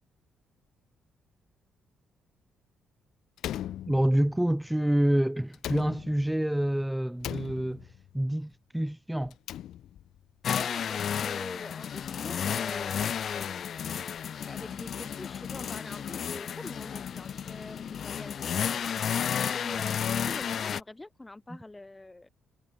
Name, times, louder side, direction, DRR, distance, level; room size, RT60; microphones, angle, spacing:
Slam, 3.4-4.5 5.5-6.5 7.2-8.1 9.2-10.2, left 12 dB, 75° left, 1.0 m, -39 dB
voice 1, 3.9-7.9 8.1-9.3, right 1 dB, 5° right, 0.6 m, -27 dB
sound 1, 10.4-20.8, left 8 dB, 55° left, 0.3 m, -32 dB
voice 2, 10.5-13.8 14.4-18.9 19.5-22.3, left 2 dB, 15° left, 1.1 m, -44 dB
cardioid pair, 90°, 0 cm